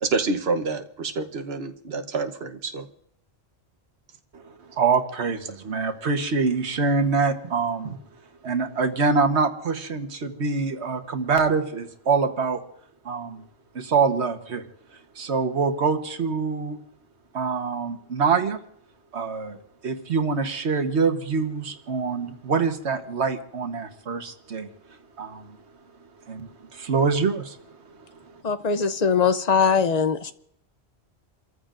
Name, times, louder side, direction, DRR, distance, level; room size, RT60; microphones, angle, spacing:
voice 1, 0.0-2.9 7.8-7.9, right 4 dB, 70° right, 6 dB, 1.2 m, -28 dB
voice 2, 4.3-8.0 8.4-12.6 13.0-13.4 13.7-14.6 15.1-16.8 17.3-18.6 19.1-24.7 25.2-25.6 26.3-27.6 28.0-28.1 28.3-28.4, right 4 dB, 90° right, 6 dB, 1.5 m, -25 dB
voice 3, 28.4-30.3, left 6 dB, 45° left, 11 dB, 0.7 m, -21 dB
29.0 x 14.5 x 2.5 m, 0.73 s
omnidirectional pair, 1.1 m